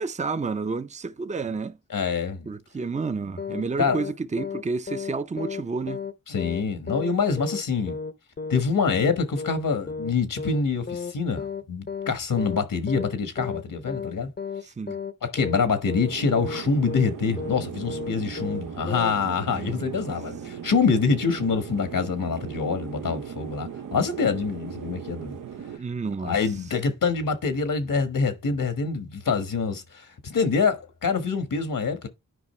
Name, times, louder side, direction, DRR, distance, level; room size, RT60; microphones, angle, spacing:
voice 1, 0.0-1.8 2.5-6.0 12.4-12.6 14.6-15.0 19.4-20.0 25.8-26.3, right 4 dB, 20° right, 0.5 m, -30 dB
voice 2, 1.9-2.5 3.8-4.0 6.3-8.0 8.5-14.3 15.2-25.4 26.2-32.1, left 5 dB, 80° left, 1.4 m, -25 dB
sound 1, 3.4-3.6 3.9-4.1 4.4-4.6 4.9-5.1 5.4-5.6 5.9-6.1 6.4-6.6 6.9-7.1 7.4-7.6 7.9-8.1 8.4-8.6 8.9-9.1 9.4-9.6 9.9-10.1 10.4-10.6 10.9-11.1 11.4-11.6 11.9-12.1 12.4-12.6 12.9-13.1 13.4-13.6 13.9-14.1 14.4-14.6 14.9-15.1 15.4-15.6 15.9-16.1 16.4-16.6 16.9-17.1 17.4-17.6 17.9-18.1 18.4-18.6 18.9-19.1, left 5 dB, 30° left, 0.7 m, -33 dB
sound 2, 16.1-25.8, right 7 dB, 75° right, 0.6 m, -38 dB
9.8 x 5.1 x 3.1 m
wide cardioid pair, 90°, 33 cm